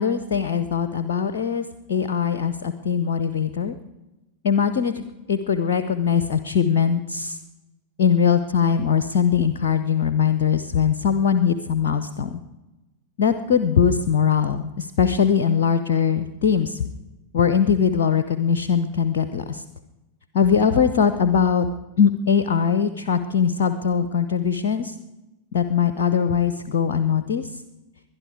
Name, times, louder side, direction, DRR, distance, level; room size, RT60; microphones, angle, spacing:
voice 1, 0.0-3.8 4.4-7.4 8.0-12.4 13.2-16.8 17.3-19.6 20.3-21.7 22.0-24.9 25.5-27.5, left 7 dB, 55° left, 11 dB, 0.7 m, -21 dB
21.5 x 11.0 x 4.8 m, 1.0 s
figure-of-eight pair, 90°, 0 cm